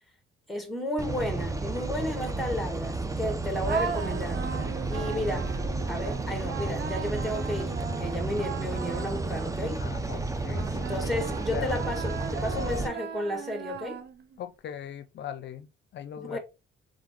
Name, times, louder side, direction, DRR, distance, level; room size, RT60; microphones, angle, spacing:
voice 1, 0.5-4.4 4.9-5.5 5.9-9.8 10.7-14.0 16.2-16.4, left 1 dB, ahead, 1.6 m, -33 dB
sound 1, 1.0-12.9, right 3 dB, 15° right, 0.7 m, -32 dB
sound 2, 3.6-9.9 10.5-14.4, right 6 dB, 60° right, 0.8 m, -38 dB
voice 2, 9.8-11.7 14.4-16.4, left 9 dB, 60° left, 0.6 m, -40 dB
3.8 x 3.7 x 3.6 m
cardioid pair, 90°, 20 cm